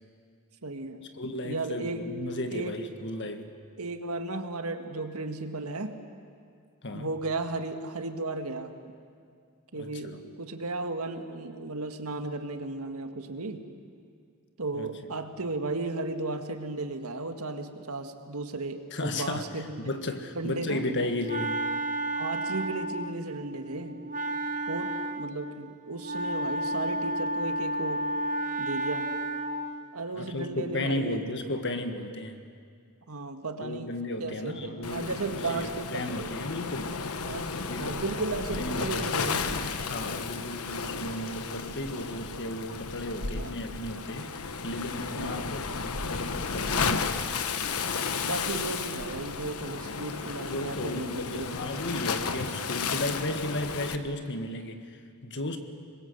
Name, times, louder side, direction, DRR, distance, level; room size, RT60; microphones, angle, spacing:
voice 1, 0.6-1.1 1.4-2.1 2.5-2.8 3.8-6.0 6.9-8.8 9.7-13.6 14.6-19.9 20.4-20.9 22.2-24.0 24.7-28.1 28.6-29.1 29.9-31.2 33.1-34.0 34.2-36.3 37.3-39.6 41.8-42.1 43.2-43.6 45.1-45.5 48.2-51.6, right 3 dB, 75° right, 7 dB, 1.7 m, -35 dB
voice 2, 1.2-3.5 6.8-7.1 9.7-10.2 14.7-14.9 18.9-19.4 19.8-21.7 30.2-32.4 33.6-37.0 37.6-38.0 38.5-39.6 39.8-44.3 44.6-47.2 50.5-55.6, left 1 dB, 55° left, 7 dB, 1.7 m, -34 dB
Wind instrument woodwind instrument, 20.7-29.8, right 1 dB, 35° right, 1.0 m, -32 dB
Waves surf, 34.8-54.0, left 5 dB, 80° left, 1.2 m, -33 dB
26.5 x 21.5 x 8.0 m, 2.2 s
head